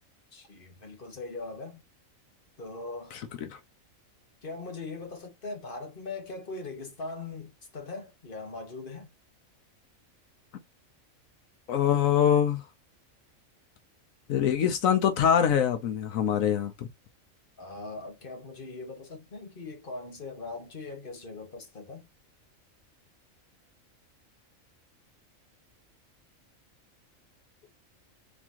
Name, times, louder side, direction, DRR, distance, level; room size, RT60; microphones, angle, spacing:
voice 1, 0.3-1.8 2.6-3.2 4.4-9.1 17.6-22.1, left 3 dB, 40° left, 1.7 m, -40 dB
voice 2, 11.7-12.6 14.3-16.9, left 9 dB, 85° left, 1.2 m, -24 dB
4.1 x 3.6 x 2.9 m
omnidirectional pair, 1.4 m